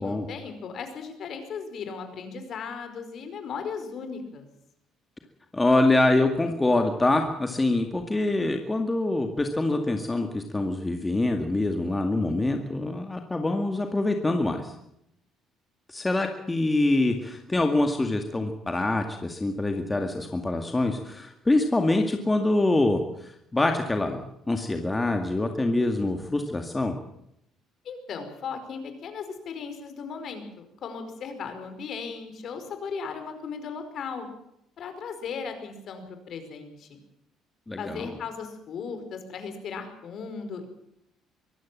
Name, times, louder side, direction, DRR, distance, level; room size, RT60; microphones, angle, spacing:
voice 1, 0.0-4.4 27.8-34.3 34.8-37.0 37.8-40.7, left 5 dB, 50° left, 8 dB, 5.1 m, -37 dB
voice 2, 5.5-14.7 15.9-24.2 24.5-26.9 37.7-38.1, left 2 dB, 15° left, 4 dB, 2.1 m, -25 dB
24.0 x 16.0 x 7.5 m, 0.76 s
cardioid pair, 125°, 0 cm